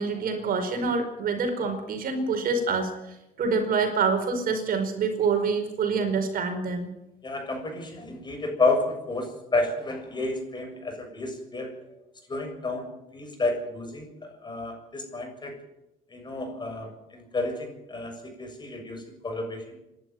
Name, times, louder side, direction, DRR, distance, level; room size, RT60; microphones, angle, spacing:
voice 1, 0.0-2.9 3.4-6.9, right 4 dB, 60° right, 5 dB, 4.8 m, -26 dB
voice 2, 7.2-11.8 12.3-14.1 14.4-15.5 16.1-19.8, left 2 dB, 25° left, 4 dB, 6.9 m, -30 dB
27.0 x 11.5 x 9.2 m, 0.92 s
cardioid pair, 110°, 17 cm